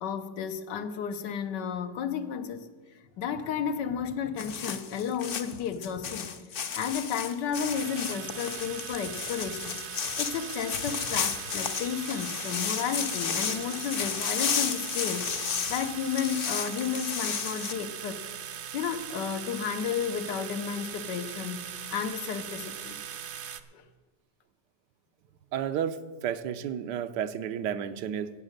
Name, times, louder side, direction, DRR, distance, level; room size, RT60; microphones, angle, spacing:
voice 1, 0.0-2.7 3.2-6.3 6.7-9.8 10.2-18.2 18.7-23.0 23.7-23.8, left 7 dB, 85° left, 9 dB, 1.5 m, -32 dB
sound 1, 4.4-17.7, left 7 dB, 55° left, 0.6 m, -33 dB
sound 2, 7.7-23.6, right 8 dB, 55° right, 0.7 m, -40 dB
voice 2, 25.5-28.3, right 9 dB, 80° right, 11 dB, 1.3 m, -32 dB
17.0 x 7.4 x 6.5 m, 1.5 s
omnidirectional pair, 1.9 m